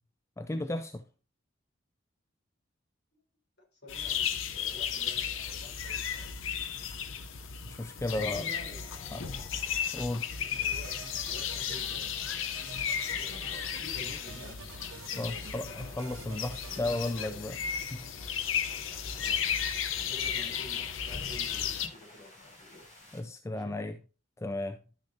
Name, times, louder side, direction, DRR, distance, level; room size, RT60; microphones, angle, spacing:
voice 1, 0.4-1.0 7.6-8.5 9.1-9.3 9.9-10.3 15.1-17.6 17.9-18.0 23.1-24.0 24.4-24.8, left 2 dB, 15° left, 0.3 m, -34 dB
voice 2, 3.8-6.3 8.0-9.1 10.4-12.1 13.1-14.7 15.3-16.1 16.8-17.4 19.1-19.4 20.0-22.9 23.5-23.8, left 1 dB, 55° left, 3.8 m, -50 dB
sound 1, 3.9-21.9, left 8 dB, 75° left, 0.7 m, -34 dB
sound 2, 8.4-23.2, left 2 dB, 35° left, 3.4 m, -57 dB
sound 3, 10.4-17.3, right 5 dB, 85° right, 0.8 m, -49 dB
11.5 x 6.4 x 2.7 m
head